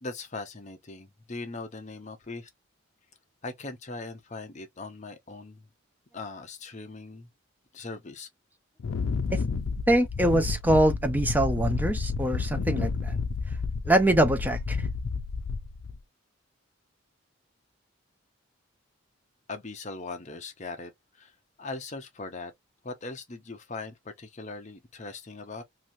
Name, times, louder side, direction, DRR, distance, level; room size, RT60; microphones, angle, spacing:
voice 1, 0.0-2.5 3.4-5.7 6.1-7.3 7.7-8.3 19.5-22.5 22.8-25.6, left 3 dB, 35° left, 0.7 m, -40 dB
Wind, 8.8-16.0, left 4 dB, 70° left, 0.4 m, -30 dB
voice 2, 9.9-13.1 13.9-14.8, right 1 dB, 10° right, 0.4 m, -24 dB
3.0 x 2.7 x 2.6 m
head